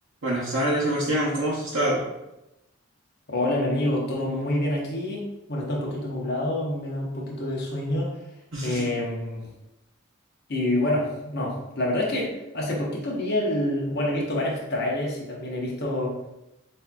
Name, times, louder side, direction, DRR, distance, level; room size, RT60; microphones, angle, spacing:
voice 1, 0.2-2.0 8.5-8.8, right 1 dB, 70° right, -8 dB, 0.9 m, -25 dB
voice 2, 3.3-8.1 8.6-9.4 10.5-16.1, left 1 dB, 50° left, -2 dB, 1.0 m, -27 dB
6.4 x 2.8 x 2.3 m, 0.93 s
head